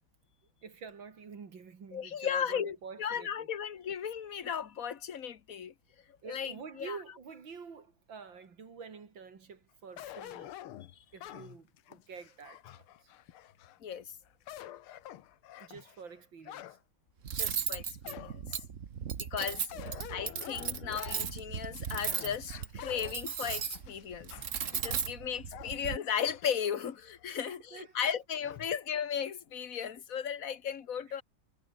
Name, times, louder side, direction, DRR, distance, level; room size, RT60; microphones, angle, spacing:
voice 1, 0.6-3.5 6.2-10.5 11.1-12.9 15.6-16.8 18.9-19.0 19.4-19.9 27.5-27.9 31.2-31.3, right 5 dB, 60° right, 3.3 m, -48 dB
voice 2, 1.9-5.7 6.2-7.0 13.8-14.1 17.4-18.4 19.2-19.6 20.1-24.3 24.7-31.2, left 8 dB, 45° left, 1.5 m, -36 dB
sound 1, 10.0-13.8 14.3-16.8 17.3-17.4 18.0-18.6 19.7-26.7 27.2-27.3 28.4-28.8, left 13 dB, 80° left, 1.9 m, -48 dB
Cutlery silverware, 17.2-26.0, right 8 dB, 45° right, 1.3 m, -37 dB
omnidirectional pair, 2.4 m